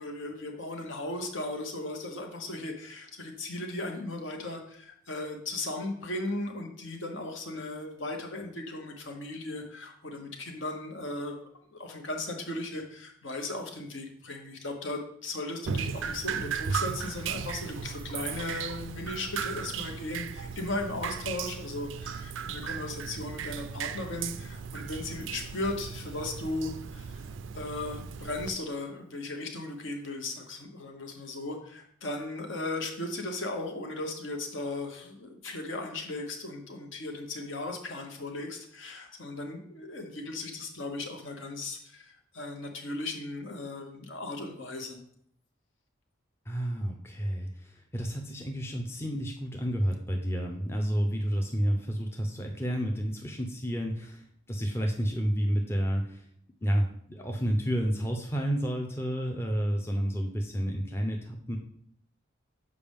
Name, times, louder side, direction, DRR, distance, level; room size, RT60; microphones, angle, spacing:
voice 1, 0.0-11.4 11.7-27.2 27.5-45.0, left 2 dB, 70° left, 3 dB, 1.1 m, -37 dB
Drip, 15.6-28.5, right 6 dB, 70° right, 0.4 m, -36 dB
voice 2, 46.5-56.2 56.6-61.6, equal, 10° left, 1 dB, 0.5 m, -30 dB
6.9 x 5.1 x 3.5 m, 0.68 s
head